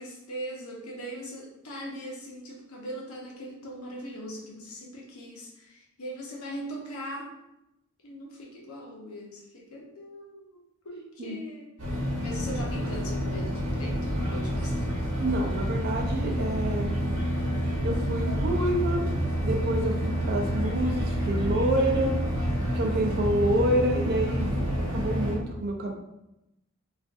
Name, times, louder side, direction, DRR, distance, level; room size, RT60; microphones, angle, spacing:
voice 1, 0.0-7.3 8.0-15.1, equal, 85° left, -2 dB, 0.8 m, -40 dB
sound 1, 11.8-25.3, equal, 80° right, 0.9 m, -28 dB
voice 2, 15.2-17.0 17.8-19.1 19.4-22.2 22.7-25.9, right 1 dB, 45° right, 1 dB, 0.5 m, -28 dB
3.5 x 2.5 x 2.5 m, 0.89 s
head